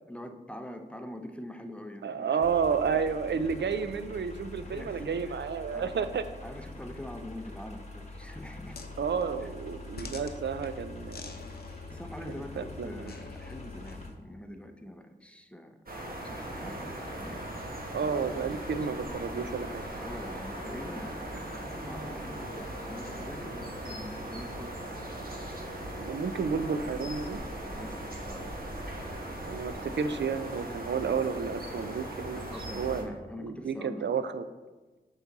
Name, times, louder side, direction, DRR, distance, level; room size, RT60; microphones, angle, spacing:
voice 1, 0.1-2.5 4.6-6.0 6.4-8.8 9.4-9.5 10.0-10.1 11.9-15.8 16.1-17.4 17.9-18.3 20.0-24.8 27.6-28.5 29.0-29.2 32.3-34.1, left 1 dB, 5° left, 6 dB, 0.6 m, -44 dB
voice 2, 2.0-6.2 9.0-11.4 12.6-13.1 17.9-19.8 26.0-27.4 29.5-32.4 32.7-33.0 33.4-34.4, right 6 dB, 65° right, 11 dB, 0.5 m, -31 dB
sound 1, 2.4-14.1, left 2 dB, 35° left, 1.1 m, -45 dB
sound 2, 8.7-14.1, left 3 dB, 55° left, 0.7 m, -49 dB
sound 3, 15.9-33.0, right 1 dB, 50° right, 1.2 m, -39 dB
7.0 x 4.0 x 4.0 m, 1.2 s
cardioid pair, 45°, 20 cm